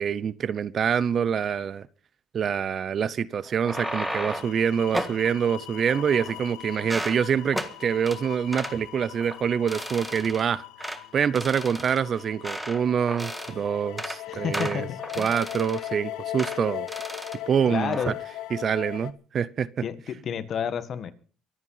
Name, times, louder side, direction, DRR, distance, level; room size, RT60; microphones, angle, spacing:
voice 1, 0.0-1.9 2.3-14.9 15.2-16.9 17.5-18.1 18.5-19.8, right 7 dB, 40° right, 0.7 m, -26 dB
sound 1, 3.4-4.6 4.9-5.2 5.8-6.5 6.8-7.2 7.5-7.7 8.1-8.2 8.5-8.8 9.2-9.4 9.7-10.4 10.8-11.0 11.3-12.8 13.1-13.6 13.9-14.2 14.5-15.9 16.4-16.6 16.9-17.4 17.7-18.1, right 1 dB, 5° right, 1.7 m, -34 dB
sound 2, 3.7-19.1, left 15 dB, 80° left, 1.1 m, -39 dB
voice 2, 14.3-15.3 17.7-18.1 19.8-21.1, left 7 dB, 45° left, 1.6 m, -31 dB
24.0 x 8.9 x 5.7 m
cardioid pair, 135°, 0 cm